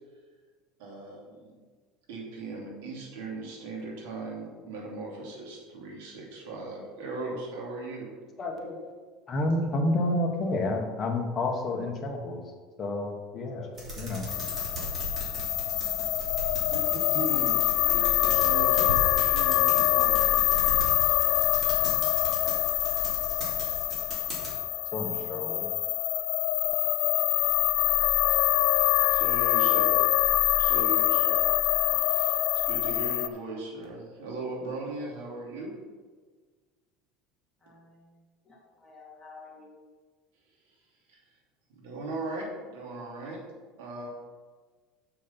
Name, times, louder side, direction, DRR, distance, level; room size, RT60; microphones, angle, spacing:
voice 1, 0.8-1.6 2.1-8.1 16.2-16.3 16.7-20.5 21.0-21.2 29.1-30.0 30.6-31.5 31.9-32.4 32.6-35.7 41.1-41.2 41.7-43.4 43.8-44.1, right 2 dB, 85° right, -2 dB, 2.8 m, -38 dB
voice 2, 8.4-8.8 9.3-12.4 12.8-14.3 24.9-25.7, left 2 dB, 25° left, 1 dB, 1.4 m, -30 dB
sound 1, 13.8-24.5, right 1 dB, 30° right, 2.9 m, -37 dB
sound 2, 14.3-33.3, left 14 dB, 55° left, 0.4 m, -25 dB
voice 3, 38.5-39.7, left 4 dB, 5° left, -6 dB, 2.8 m, -50 dB
6.8 x 6.4 x 5.8 m, 1.5 s
cardioid pair, 145°, 0 cm